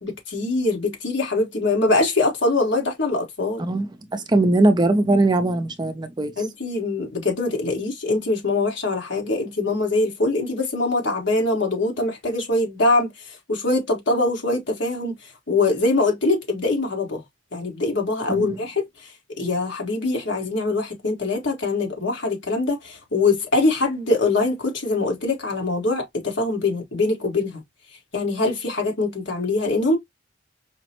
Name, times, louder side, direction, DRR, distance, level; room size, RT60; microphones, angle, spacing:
voice 1, 0.0-3.6 6.4-13.1 13.5-15.1 15.5-17.2 17.5-18.9 19.4-27.6 28.1-30.0, left 2 dB, 65° left, 1.5 m, -23 dB
voice 2, 3.6-6.3 18.3-18.6, right 2 dB, 25° right, 0.5 m, -20 dB
5.0 x 2.1 x 2.9 m
head